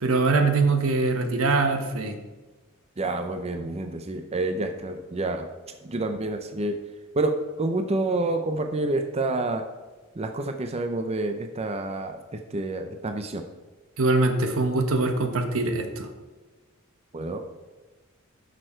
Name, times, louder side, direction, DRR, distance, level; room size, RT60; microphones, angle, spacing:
voice 1, 0.0-2.1 14.0-16.1, right 3 dB, 80° right, 6 dB, 1.2 m, -23 dB
voice 2, 3.0-5.5 5.9-6.7 7.2-7.3 7.6-9.6 10.2-12.2 12.5-13.4 17.1-17.4, right 2 dB, 30° right, 6 dB, 0.6 m, -28 dB
11.0 x 6.4 x 4.5 m, 1.2 s
head